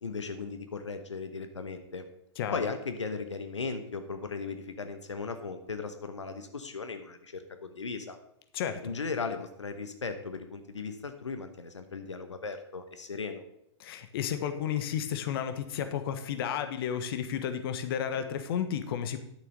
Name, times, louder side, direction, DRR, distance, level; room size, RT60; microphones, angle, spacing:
voice 1, 0.0-2.1 2.5-8.2 8.8-13.4 18.1-18.2, left 4 dB, 80° left, 8 dB, 1.1 m, -37 dB
voice 2, 13.8-19.2, left 9 dB, 55° left, 8 dB, 1.2 m, -32 dB
11.5 x 6.9 x 5.2 m, 0.79 s
figure-of-eight pair, 105°, 15 cm